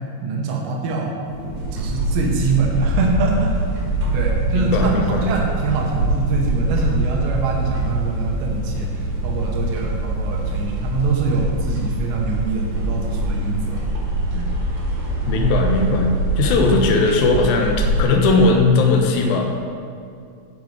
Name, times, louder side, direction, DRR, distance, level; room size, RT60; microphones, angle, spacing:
voice 1, 0.2-1.2 1.7-3.7 4.1-13.9 14.3-14.5 16.4-16.6, right 4 dB, 90° right, 0 dB, 3.3 m, -24 dB
sound 1, 1.2-14.0, equal, 50° left, 1.6 m, -35 dB
sound 2, 1.5-18.0, right 1 dB, 60° right, 2.3 m, -24 dB
voice 2, 4.5-5.3 15.3-16.1 16.4-19.4, left 3 dB, 80° left, 1 dB, 1.7 m, -18 dB
12.5 x 5.4 x 4.7 m, 2.3 s
omnidirectional pair, 4.9 m